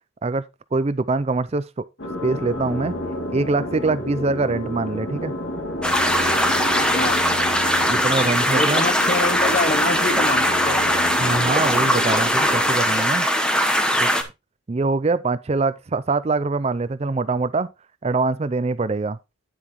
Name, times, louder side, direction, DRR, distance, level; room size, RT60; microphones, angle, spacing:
voice 1, 0.7-1.9 2.2-2.9 3.3-5.3 7.9-8.8 11.2-13.3 14.0-14.3 14.7-17.7 18.0-19.2, right 3 dB, 30° right, 0.4 m, -23 dB
sound 1, 2.0-12.8, left 1 dB, 60° left, 2.6 m, -30 dB
sound 2, 5.8-14.2, equal, 5° left, 1.0 m, -20 dB
voice 2, 8.5-11.0, left 3 dB, 35° left, 0.8 m, -26 dB
9.5 x 8.4 x 3.0 m
head